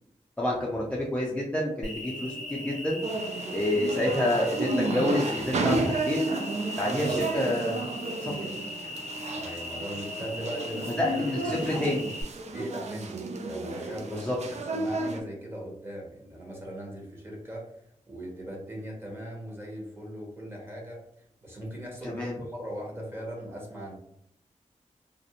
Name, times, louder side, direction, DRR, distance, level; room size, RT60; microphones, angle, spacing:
voice 1, 0.4-3.0 3.5-6.2 6.8-7.8 8.2-8.3 11.0-12.1 14.1-14.4 22.0-22.4, left 1 dB, 10° left, -4 dB, 0.4 m, -28 dB
Cricket, 1.8-12.2, left 1 dB, 75° right, 1.4 m, -39 dB
sound 1, 3.0-15.2, right 2 dB, 60° right, 0.4 m, -32 dB
voice 2, 9.3-12.0 12.5-21.0 21.4-24.0, equal, 20° right, -2 dB, 0.9 m, -39 dB
2.5 x 2.0 x 2.7 m, 0.73 s
wide cardioid pair, 95°, 13 cm